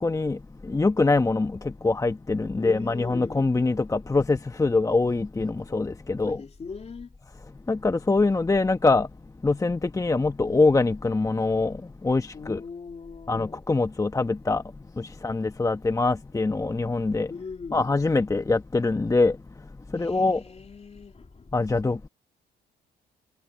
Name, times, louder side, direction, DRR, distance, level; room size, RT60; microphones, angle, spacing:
voice 1, 0.0-0.4 0.6-6.4 7.7-9.1 9.4-12.6 13.3-14.6 15.0-17.3 17.7-19.4 19.9-20.4 21.5-22.1, left 3 dB, 20° left, 1.3 m, -24 dB
voice 2, 2.6-3.4 6.2-7.1 12.3-13.6 17.3-17.8 19.9-21.5, left 5 dB, 35° left, 3.0 m, -40 dB
supercardioid pair, 75°, 18 cm